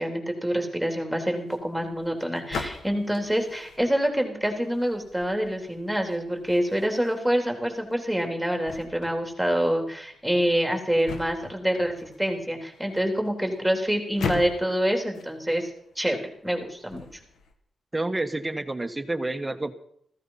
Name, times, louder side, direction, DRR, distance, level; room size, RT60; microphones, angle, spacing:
voice 1, 0.0-15.7 16.0-17.1, equal, ahead, 4 dB, 3.4 m, -26 dB
sound 1, 1.4-17.5, left 4 dB, 80° left, 2.0 m, -41 dB
voice 2, 17.9-19.7, right 2 dB, 15° right, 9 dB, 1.3 m, -29 dB
15.0 x 14.0 x 5.7 m, 0.67 s
cardioid pair, 80°, 0 cm